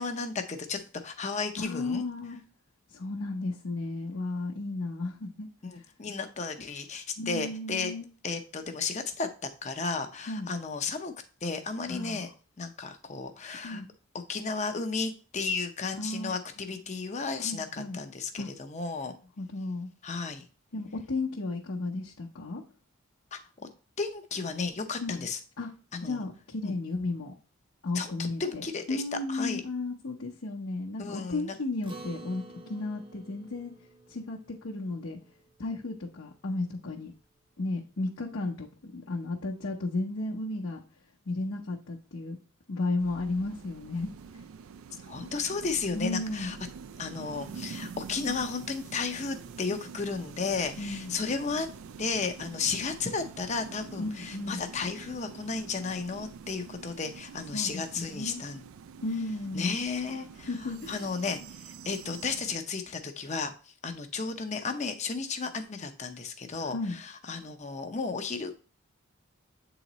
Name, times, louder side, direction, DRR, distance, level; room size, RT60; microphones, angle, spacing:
voice 1, 0.0-2.0 5.6-7.9 8.2-9.3 9.6-11.1 11.4-12.3 12.6-13.8 14.3-19.2 20.0-20.4 23.3-23.4 24.0-25.4 25.9-26.2 26.6-26.7 27.9-29.0 29.3-29.6 31.0-31.5 45.0-46.6 47.0-51.7 52.0-58.7 59.5-68.6, left 4 dB, 30° left, 7 dB, 0.6 m, -34 dB
voice 2, 1.6-2.4 2.9-5.8 7.2-8.1 10.3-10.5 11.8-12.3 13.6-13.8 16.0-16.3 17.4-18.0 18.4-18.5 19.4-19.9 20.7-22.6 25.0-25.3 25.6-25.7 26.0-27.3 27.8-33.7 34.1-35.2 35.6-37.1 37.6-40.8 41.3-42.4 42.7-44.1 45.9-46.6 50.8-51.2 54.0-54.7 57.5-57.8 58.1-58.4 59.0-59.8 60.5-61.1 66.5-66.9, left 2 dB, 65° left, -3 dB, 0.8 m, -34 dB
Acoustic guitar, 31.8-36.5, right 2 dB, 20° right, 0.7 m, -50 dB
sound 1, 43.0-62.6, right 6 dB, 70° right, 0.4 m, -46 dB
8.1 x 3.9 x 3.0 m, 0.36 s
head